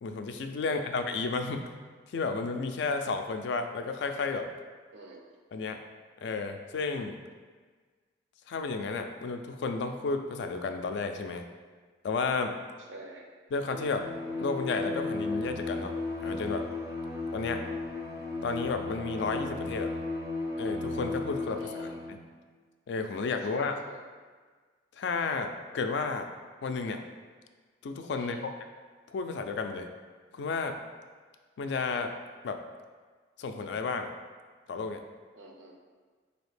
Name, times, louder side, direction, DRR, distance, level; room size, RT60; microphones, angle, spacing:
voice 1, 0.0-1.7 2.1-4.5 5.5-5.8 6.2-7.2 8.5-11.4 12.0-12.6 13.5-14.1 14.4-15.9 16.2-16.7 17.3-17.6 18.4-19.9 20.6-22.2 22.9-23.7 25.0-26.3 26.6-27.0 27.8-28.4 29.1-29.9 30.3-30.8 31.6-32.1 32.4-32.6 33.4-34.1 34.7-35.0, left 4 dB, 65° left, 6 dB, 0.3 m, -32 dB
voice 2, 0.6-1.0 4.9-5.2 12.9-13.3 21.5-21.9 23.5-24.0 28.1-28.4 35.4-35.8, right 2 dB, 85° right, 0 dB, 0.6 m, -48 dB
Bowed string instrument, 13.7-22.3, left 3 dB, 15° right, 0.4 m, -35 dB
4.1 x 2.8 x 3.2 m, 1.5 s
head